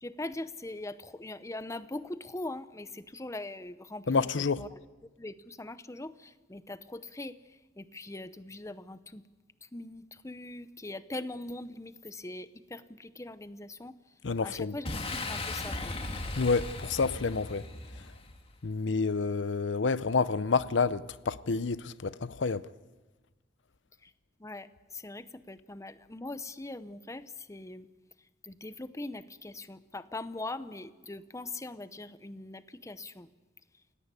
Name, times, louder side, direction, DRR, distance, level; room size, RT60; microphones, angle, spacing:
voice 1, 0.0-4.7 5.2-9.3 9.6-14.0 14.4-16.0 24.0-24.1 24.4-27.9 28.4-33.3, left 2 dB, 15° left, 0.8 m, -41 dB
voice 2, 4.1-4.6 14.2-14.7 16.4-17.7 18.6-22.6, left 4 dB, 80° left, 0.7 m, -29 dB
Boom, 14.8-18.5, left 2 dB, 30° left, 2.0 m, -37 dB
29.0 x 17.5 x 8.3 m
head